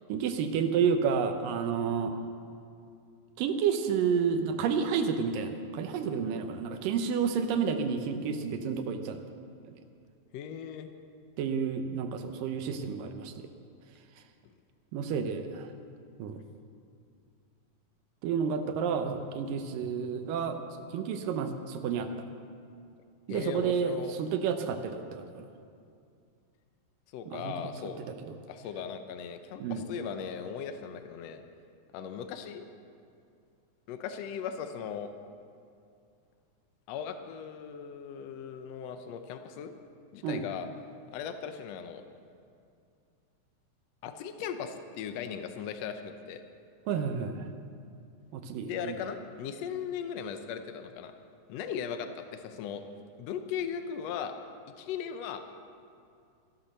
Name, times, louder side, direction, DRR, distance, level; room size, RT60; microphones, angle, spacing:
voice 1, 0.1-2.2 3.4-9.2 9.6-9.7 11.4-13.3 14.9-15.7 16.2-16.4 18.2-22.1 23.3-25.5 27.3-27.5 28.0-28.4 29.6-29.8 40.2-40.4 46.9-47.5 48.3-49.0, right 6 dB, 80° right, 7 dB, 2.4 m, -30 dB
voice 2, 10.3-10.9 23.3-24.1 27.1-28.0 28.5-31.4 31.9-32.7 33.9-35.1 36.9-39.7 40.1-40.7 41.1-42.0 44.0-46.4 48.6-51.1 51.5-52.8 53.2-54.4 54.8-55.5, left 7 dB, 85° left, 8 dB, 1.4 m, -38 dB
14.5 x 12.0 x 6.6 m, 2.4 s
omnidirectional pair, 4.0 m